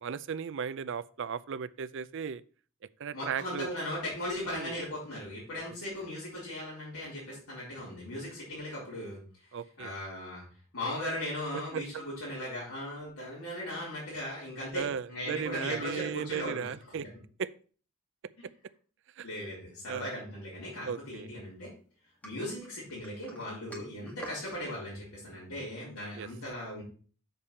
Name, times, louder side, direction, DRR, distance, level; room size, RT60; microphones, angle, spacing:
voice 1, 0.0-2.4 3.0-3.7 4.5-4.7 9.5-9.9 11.7-11.8 14.7-17.0 17.4-17.5 19.2-19.3 19.9-20.1 20.8-21.3 26.2-26.3, right 7 dB, 60° right, 15 dB, 0.4 m, -36 dB
voice 2, 3.1-9.2 9.8-10.4 10.7-16.7 17.0-17.1 18.4-18.5 19.2-21.7 22.2-26.8, left 1 dB, 85° left, -8 dB, 4.2 m, -38 dB
sound 1, 22.2-24.6, equal, 5° left, 1.7 m, -48 dB
7.1 x 6.7 x 4.3 m, 0.41 s
head